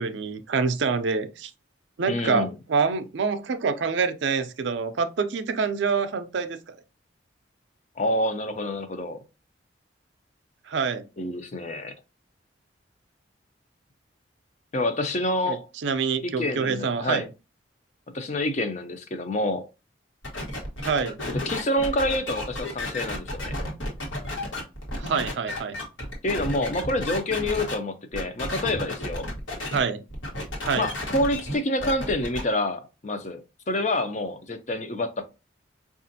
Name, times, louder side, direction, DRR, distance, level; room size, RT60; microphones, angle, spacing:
voice 1, 0.0-1.5 2.0-6.6 10.7-11.0 15.5-15.6 15.8-17.3 20.8-21.2 25.0-25.8 29.7-30.0 30.6-30.9, right 5 dB, 70° right, 0.4 m, -26 dB
voice 2, 2.1-2.5 8.0-9.2 11.2-11.9 14.7-15.7 16.2-17.3 18.1-19.7 21.3-23.6 26.2-29.3 30.7-33.4 33.7-35.2, left 1 dB, 35° left, 0.5 m, -27 dB
sound 1, 20.2-27.7 28.1-29.8 30.1-32.4, left 1 dB, 80° left, 1.2 m, -32 dB
5.0 x 2.4 x 2.6 m
head